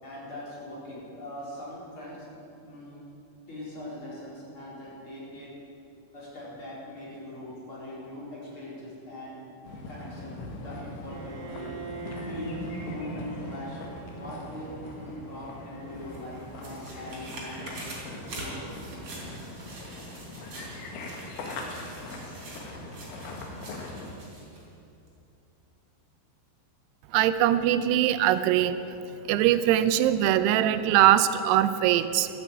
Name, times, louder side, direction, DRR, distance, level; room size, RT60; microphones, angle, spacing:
voice 1, 0.0-2.2 2.6-3.1 3.5-5.5 6.1-9.4 9.9-11.7 12.3-12.5 12.8-13.1 13.4-13.8 14.2-17.9 18.3-18.6, left 1 dB, 30° left, -7 dB, 4.7 m, -41 dB
sound 1, 9.6-24.2, left 2 dB, 75° left, 3.6 m, -41 dB
Bowed string instrument, 11.1-17.1, right 4 dB, 60° right, 2.5 m, -45 dB
sound 2, 15.9-24.6 25.1-25.2, right 2 dB, 45° right, 4.7 m, -44 dB
voice 2, 27.1-28.8 29.3-32.3, right 12 dB, 85° right, 12 dB, 2.7 m, -22 dB
13.0 x 12.5 x 8.7 m, 2.7 s
omnidirectional pair, 4.7 m